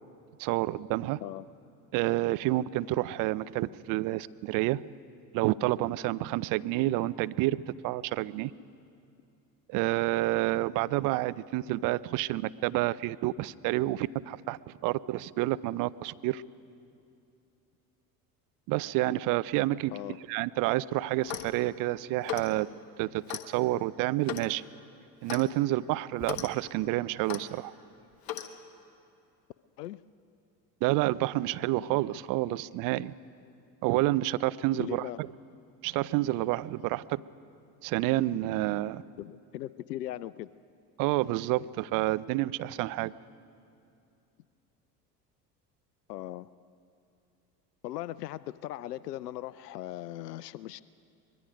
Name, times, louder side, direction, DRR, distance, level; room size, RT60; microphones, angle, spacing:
voice 1, 0.4-1.2 1.9-4.9 5.3-8.5 9.7-16.4 18.7-19.9 20.3-22.7 23.0-24.6 25.2-27.7 30.8-33.1 33.8-35.3 35.8-37.2 37.8-39.0 41.0-43.1, right 17 dB, 45° right, 17 dB, 0.6 m, -29 dB
Clock, 21.2-21.6 22.2-22.5 23.3-23.5 24.2-24.5 25.3-25.5 26.2-26.5 27.3-27.4 28.2-28.5, left 11 dB, 45° left, 1.5 m, -37 dB
voice 2, 34.8-35.2 39.2-40.5 46.1-46.5 47.8-50.8, left 14 dB, 75° left, 18 dB, 0.6 m, -38 dB
24.0 x 21.5 x 5.2 m, 2.6 s
figure-of-eight pair, 65°, 49 cm